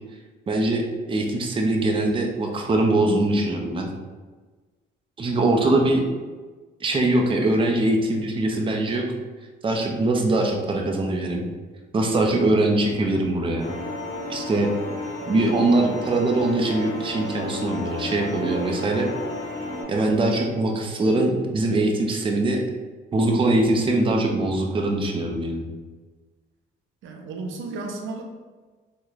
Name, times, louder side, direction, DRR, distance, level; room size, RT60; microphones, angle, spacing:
voice 1, 0.5-3.9 5.2-6.0 6.8-9.1 9.6-11.4 11.9-13.7 14.3-14.7 15.3-19.1 19.9-22.6 23.1-25.7, right 2 dB, 25° right, 1 dB, 0.5 m, -22 dB
sound 1, 13.6-19.8, left 2 dB, 45° left, 1.2 m, -32 dB
voice 2, 27.0-28.2, right 3 dB, 80° right, 2 dB, 0.5 m, -34 dB
3.5 x 2.1 x 3.1 m, 1.3 s
cardioid pair, 90°, 20 cm